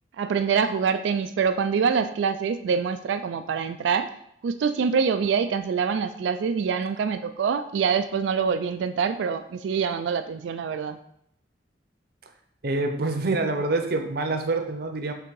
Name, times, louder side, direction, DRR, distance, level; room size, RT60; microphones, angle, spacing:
voice 1, 0.2-4.1 4.4-11.0, right 6 dB, 75° right, 9 dB, 0.3 m, -25 dB
voice 2, 12.6-15.1, right 2 dB, 55° right, 6 dB, 0.7 m, -26 dB
5.9 x 3.6 x 4.7 m, 0.73 s
head